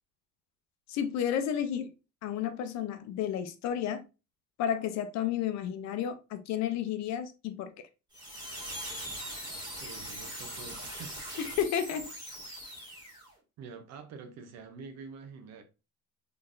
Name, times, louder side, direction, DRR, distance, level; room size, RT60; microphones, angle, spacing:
voice 1, 0.9-1.9 2.2-4.0 4.6-7.7 11.4-12.1, left 9 dB, 65° left, 0.7 m, -32 dB
sound 1, 8.1-13.3, equal, 15° right, 2.1 m, -41 dB
voice 2, 9.8-11.2 13.6-15.6, right 5 dB, 60° right, 0.8 m, -46 dB
3.9 x 3.3 x 2.6 m
cardioid pair, 155°, 30 cm